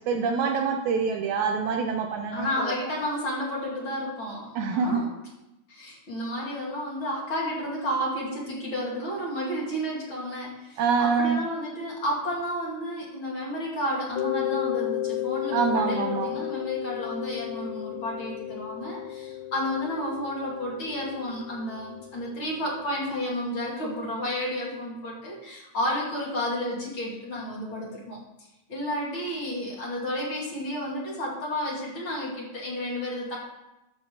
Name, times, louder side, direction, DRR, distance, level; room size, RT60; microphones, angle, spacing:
voice 1, 0.1-2.7 4.6-5.0 10.8-11.4 15.5-16.4, right 5 dB, 75° right, 4 dB, 2.0 m, -25 dB
voice 2, 2.3-5.1 5.7-28.2 28.7-33.4, equal, 40° left, -4 dB, 3.3 m, -31 dB
Mallet percussion, 14.2-22.8, left 13 dB, 90° left, 1.5 m, -33 dB
13.5 x 5.2 x 6.7 m, 0.96 s
omnidirectional pair, 3.8 m